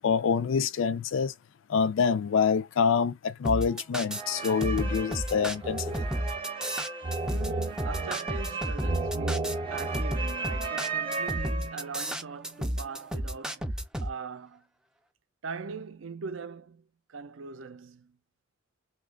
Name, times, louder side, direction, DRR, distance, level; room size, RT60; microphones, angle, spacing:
voice 1, 0.0-1.3 1.7-5.9, left 6 dB, 70° left, 0.4 m, -26 dB
sound 1, 3.4-14.1, equal, 5° right, 0.3 m, -32 dB
sound 2, 4.1-12.0, right 3 dB, 25° right, 0.8 m, -34 dB
voice 2, 7.3-14.7 15.4-18.2, right 5 dB, 75° right, 0.5 m, -41 dB
3.0 x 2.3 x 3.7 m
head